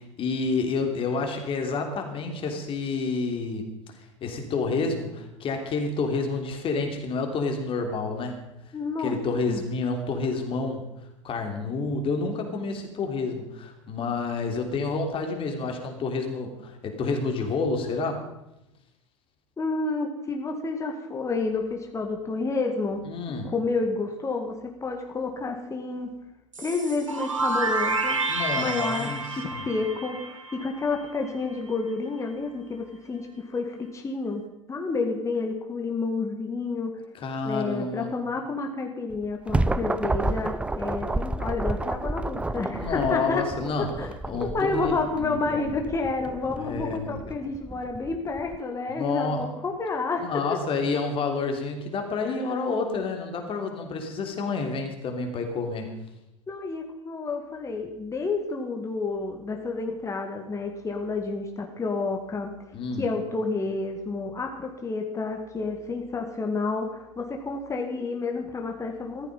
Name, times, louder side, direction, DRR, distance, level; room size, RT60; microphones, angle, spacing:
voice 1, 0.0-3.7 4.2-8.4 9.0-10.9 11.2-18.2 23.1-23.5 28.3-29.2 29.5-29.6 37.1-38.1 42.8-43.9 44.3-45.7 46.6-47.3 48.9-49.5 50.2-55.9 62.7-63.1, left 4 dB, 35° left, 4 dB, 3.3 m, -29 dB
voice 2, 8.7-9.2 9.5-9.6 19.6-23.0 23.4-24.5 24.8-26.1 26.6-28.2 28.6-34.4 34.7-36.9 37.4-43.4 44.0-44.1 44.4-50.6 56.5-62.5 63.0-69.3, left 3 dB, 20° left, 3 dB, 2.0 m, -30 dB
sound 1, 26.5-31.3, right 3 dB, 85° right, 1.6 m, -29 dB
sound 2, 39.1-48.6, right 2 dB, 5° right, 0.6 m, -31 dB
15.0 x 14.0 x 5.4 m, 0.90 s
figure-of-eight pair, 80°, 16 cm